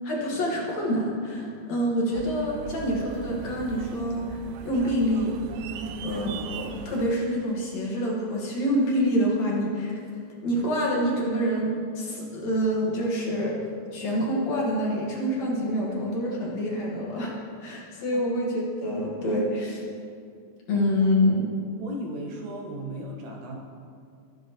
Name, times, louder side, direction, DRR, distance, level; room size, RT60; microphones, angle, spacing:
voice 1, 0.0-4.4 4.7-5.3 6.0-10.0 10.4-13.6 13.9-17.3 17.6-19.8 20.7-21.5, equal, 60° left, -4 dB, 2.6 m, -26 dB
sound 1, 2.1-7.1, right 7 dB, 90° right, 1.6 m, -39 dB
voice 2, 21.7-23.6, right 1 dB, 70° right, -1 dB, 2.6 m, -36 dB
14.0 x 10.0 x 3.0 m, 2.4 s
omnidirectional pair, 3.8 m